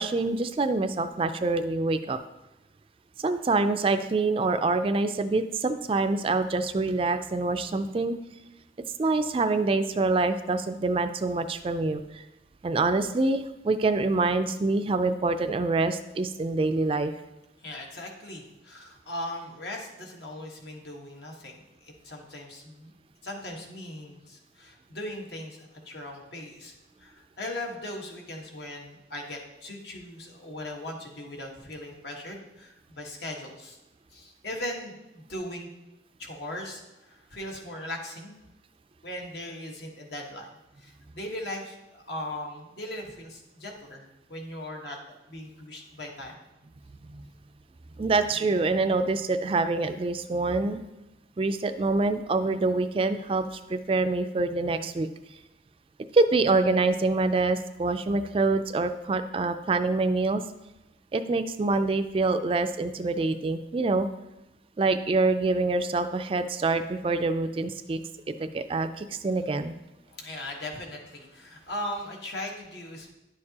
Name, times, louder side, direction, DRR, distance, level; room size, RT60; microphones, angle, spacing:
voice 1, 0.0-2.2 3.2-8.2 9.0-12.2 12.6-17.1 47.1-47.2 48.0-50.8 51.4-55.1 56.1-60.4 61.1-64.1 64.8-68.0 68.4-69.8, right 3 dB, 30° right, 9 dB, 0.3 m, -26 dB
voice 2, 17.6-22.9 23.2-33.8 34.1-35.7 36.2-38.3 39.0-40.5 40.8-45.0 45.3-46.4 70.1-73.1, left 1 dB, 70° left, 1 dB, 1.4 m, -39 dB
10.5 x 6.5 x 2.9 m, 0.96 s
head